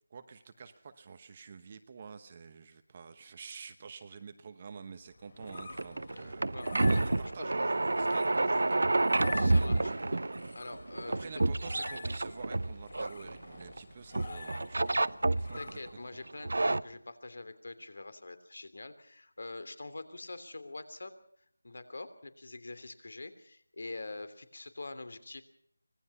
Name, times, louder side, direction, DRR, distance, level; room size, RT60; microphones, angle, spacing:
voice 1, 0.1-6.4 6.7-10.2 11.2-15.8, right 5 dB, 20° right, 10 dB, 1.0 m, -48 dB
sound 1, 5.1-16.2, left 3 dB, 35° left, 3.7 m, -48 dB
sound 2, 5.4-13.8 14.1-15.8 16.3-16.8, right 2 dB, 60° right, 0.8 m, -29 dB
voice 2, 6.1-6.7 7.4-7.7 9.3-9.9 10.5-11.4 14.3-14.4 15.5-21.1 21.6-25.4, left 2 dB, 55° left, 12 dB, 3.1 m, -45 dB
25.0 x 20.0 x 5.6 m, 0.66 s
figure-of-eight pair, 175°, 0 cm